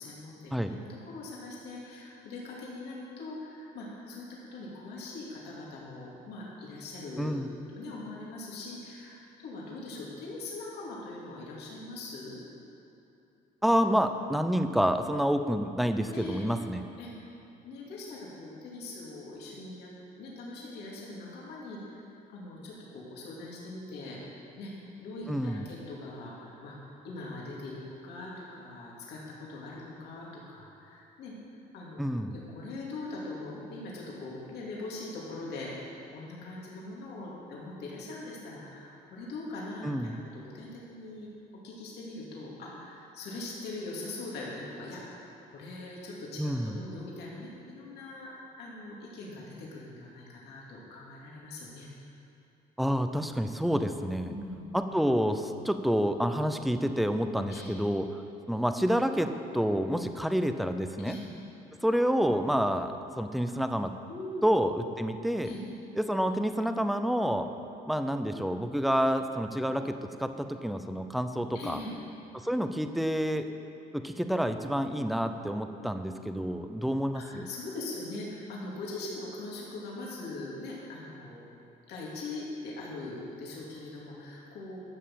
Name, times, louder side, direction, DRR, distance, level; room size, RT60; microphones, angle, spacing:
voice 1, 0.0-12.4 16.1-16.5 17.0-17.1 17.6-19.9 20.2-24.2 24.6-24.7 25.0-26.8 27.0-31.3 31.7-41.3 41.6-51.9 54.3-54.7 57.5-57.7 61.0-61.2 64.1-64.4 65.4-65.6 71.5-71.9 76.1-76.3 77.1-81.5 81.9-84.8, left 2 dB, 75° left, -5 dB, 2.6 m, -42 dB
voice 2, 7.2-7.5 13.6-16.8 25.3-25.6 32.0-32.4 39.8-40.2 46.4-46.7 52.8-54.3 54.7-58.2 58.5-61.2 61.8-63.9 64.4-65.5 66.0-67.5 67.9-71.8 72.3-73.5 73.9-77.5, equal, ahead, 8 dB, 0.6 m, -28 dB
12.5 x 6.5 x 7.6 m, 2.8 s
cardioid pair, 110°, 17 cm